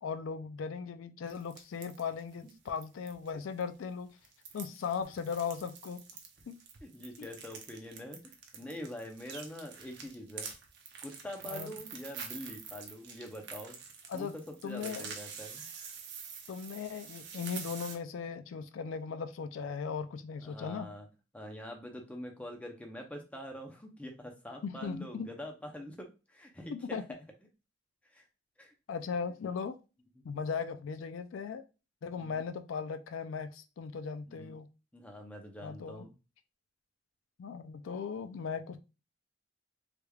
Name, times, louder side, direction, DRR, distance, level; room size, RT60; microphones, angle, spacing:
voice 1, 0.0-4.1 4.5-6.0 6.5-6.6 7.2-7.3 11.4-11.7 14.1-14.3 14.6-15.1 16.5-20.9 24.6-25.3 26.7-27.0 28.9-29.8 30.2-31.6 32.0-34.7 35.6-36.1 37.4-38.8, left 6 dB, 80° left, 10 dB, 0.4 m, -38 dB
sound 1, 1.3-3.3 3.6-3.7 4.2-18.0, right 6 dB, 60° right, 0.7 m, -46 dB
voice 2, 6.8-10.5 11.0-13.8 14.1-15.6 20.4-21.1 21.3-27.0 28.1-28.3 28.6-28.7 30.2-30.3 32.1-32.4 34.3-34.5 34.9-36.1, equal, 5° left, 2 dB, 0.6 m, -45 dB
3.3 x 3.2 x 2.3 m, 0.30 s
head